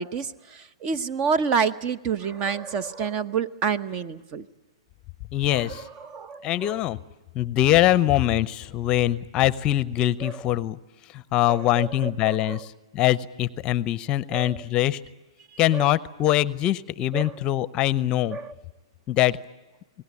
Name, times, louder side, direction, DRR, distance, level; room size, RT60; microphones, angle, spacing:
voice 1, 0.0-4.4 5.5-6.8 10.2-10.5 11.5-12.7 14.3-14.6 15.7-16.0 17.1-17.4 18.3-18.5, right 6 dB, 35° right, 14 dB, 1.0 m, -29 dB
voice 2, 5.3-5.8 6.4-7.0 7.3-10.8 11.1-15.0 15.6-18.4 19.1-19.4, left 14 dB, 30° left, 17 dB, 0.7 m, -23 dB
27.0 x 19.0 x 8.5 m, 1.1 s
hypercardioid pair, 125°, 3 cm